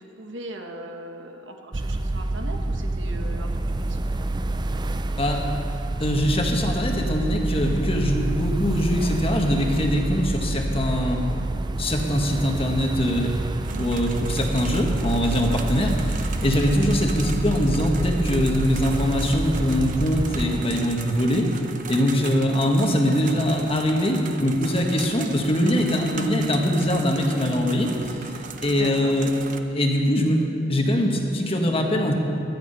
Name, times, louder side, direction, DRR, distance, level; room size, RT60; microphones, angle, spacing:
voice 1, 0.0-3.5 3.8-4.5 13.6-14.3 15.8-16.1 22.5-23.6 28.6-29.1, right 2 dB, 70° right, 3 dB, 1.4 m, -40 dB
sound 1, 1.7-20.6, right 2 dB, 25° right, 0.4 m, -28 dB
voice 2, 6.0-11.2 11.8-13.4 13.8-21.5 21.9-27.9 28.3-29.3 29.7-32.1, equal, 30° left, 2 dB, 1.5 m, -22 dB
sound 2, 13.6-29.6, right 6 dB, 45° right, 0.8 m, -39 dB
17.5 x 12.5 x 5.5 m, 2.8 s
head